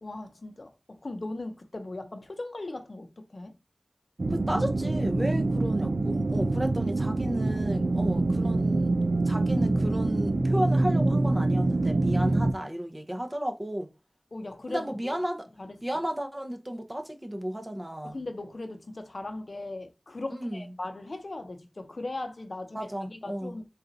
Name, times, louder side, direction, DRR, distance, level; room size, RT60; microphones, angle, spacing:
voice 1, 0.0-3.5 14.3-15.2 15.6-15.8 18.0-23.6, left 2 dB, 60° left, 0.7 m, -38 dB
sound 1, 4.2-12.5, right 2 dB, 80° right, 0.4 m, -25 dB
voice 2, 4.3-8.9 9.2-13.9 14.7-15.5 15.8-18.2 20.3-20.7 22.7-23.5, equal, 20° right, 0.7 m, -33 dB
4.1 x 2.4 x 3.9 m
wide cardioid pair, 50°, 0 cm